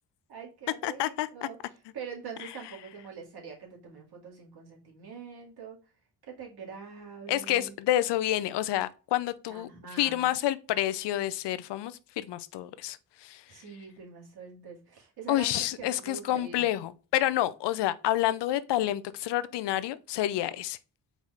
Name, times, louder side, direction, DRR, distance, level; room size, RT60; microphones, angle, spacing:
voice 1, 0.3-5.8 6.2-7.8 9.5-10.4 13.5-16.6, right 6 dB, 65° right, 2.1 m, -44 dB
voice 2, 0.8-1.3 7.3-9.7 10.0-13.4 15.3-20.8, left 13 dB, 85° left, 0.5 m, -29 dB
4.6 x 4.1 x 2.4 m
cardioid pair, 105°, 41 cm